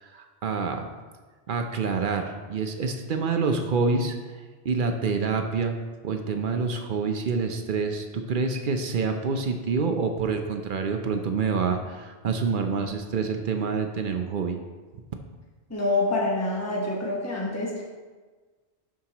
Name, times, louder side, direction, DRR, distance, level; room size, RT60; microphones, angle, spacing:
voice 1, 0.0-0.8 1.5-4.2 4.6-5.8 6.0-14.6, right 4 dB, 55° right, 5 dB, 0.7 m, -27 dB
voice 2, 15.7-17.8, left 2 dB, 15° left, -3 dB, 1.1 m, -26 dB
11.5 x 4.8 x 2.9 m, 1.4 s
omnidirectional pair, 1.1 m